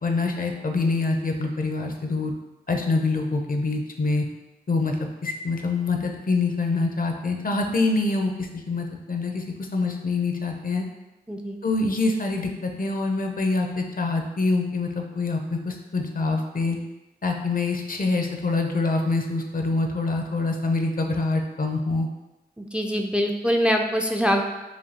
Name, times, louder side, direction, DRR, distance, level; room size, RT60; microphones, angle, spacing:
voice 1, 0.0-2.3 2.7-4.2 4.7-9.4 9.7-10.8 11.6-16.8 17.2-22.1, left 3 dB, 60° left, 3 dB, 0.5 m, -25 dB
voice 2, 22.6-24.4, equal, 5° right, 3 dB, 0.4 m, -23 dB
4.9 x 2.7 x 2.8 m, 1.0 s
wide cardioid pair, 60°, 17 cm